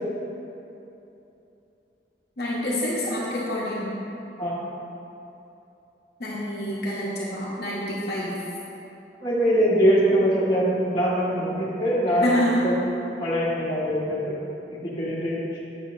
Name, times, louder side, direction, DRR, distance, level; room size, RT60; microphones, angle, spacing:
voice 1, 2.4-3.9 6.2-8.3 12.1-12.6, equal, 60° left, -6 dB, 0.9 m, -27 dB
voice 2, 9.2-12.3 12.6-12.7 13.2-14.3 14.8-15.4, equal, 25° left, -8 dB, 1.2 m, -22 dB
8.0 x 6.1 x 2.6 m, 2.9 s
head